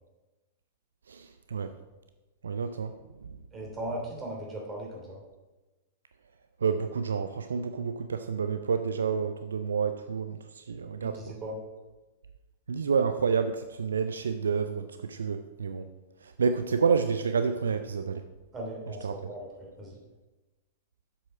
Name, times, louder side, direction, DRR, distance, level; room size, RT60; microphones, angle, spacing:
voice 1, 1.1-1.7 2.4-2.9 3.2-3.4 6.6-11.4 12.7-15.9 16.2-18.2 19.0-19.1, right 5 dB, 75° right, 9 dB, 0.4 m, -29 dB
voice 2, 3.5-5.2 11.0-11.6 18.5-20.0, right 1 dB, 20° right, -1 dB, 2.9 m, -38 dB
7.6 x 7.0 x 4.9 m, 1.1 s
figure-of-eight pair, 100°, 0 cm